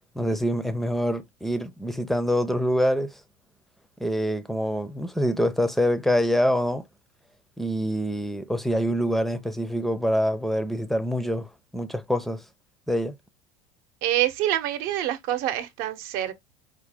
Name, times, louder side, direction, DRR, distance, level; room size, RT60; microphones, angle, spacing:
voice 1, 0.2-3.2 4.0-6.8 7.6-11.5 11.7-12.4 12.9-13.1, equal, ahead, 0.5 m, -25 dB
voice 2, 14.0-16.3, right 13 dB, 60° right, 0.8 m, -26 dB
4.9 x 2.1 x 3.4 m
supercardioid pair, 100°, 17 cm